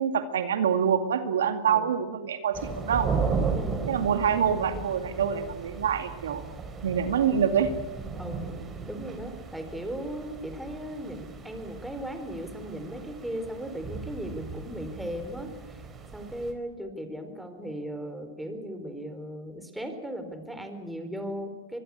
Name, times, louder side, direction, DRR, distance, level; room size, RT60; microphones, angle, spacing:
voice 1, 0.0-3.1 3.9-6.4 6.8-7.7, right 8 dB, 85° right, 8 dB, 2.4 m, -26 dB
sound 1, 2.5-16.5, right 5 dB, 20° right, 4.1 m, -36 dB
voice 2, 3.5-3.9 8.1-8.4 8.9-15.8 16.1-21.8, equal, 5° right, 7 dB, 4.1 m, -37 dB
25.0 x 21.5 x 8.5 m, 1.2 s
hypercardioid pair, 125°, 0 cm